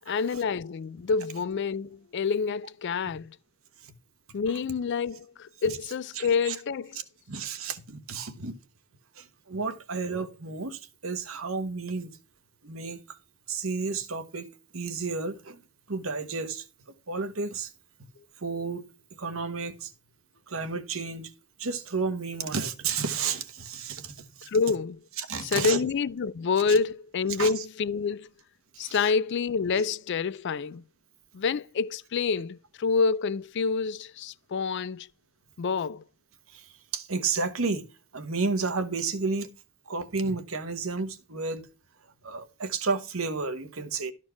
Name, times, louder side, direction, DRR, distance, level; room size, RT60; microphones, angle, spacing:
voice 1, 0.1-3.3 4.3-7.0 24.5-25.0 25.4-28.3 28.8-30.8 31.3-35.1 35.6-36.0, left 5 dB, 55° left, 0.4 m, -27 dB
voice 2, 6.2-6.6 7.3-8.6 9.2-12.1 12.6-13.2 13.5-14.5 14.7-15.6 15.9-16.7 17.1-17.7 18.4-18.9 19.2-19.9 20.5-21.3 21.6-24.5 25.2-25.8 27.4-27.6 28.8-29.1 36.5-37.8 38.1-39.5 39.9-41.7 42.2-44.1, right 4 dB, 70° right, 1.2 m, -32 dB
12.5 x 4.4 x 5.8 m
head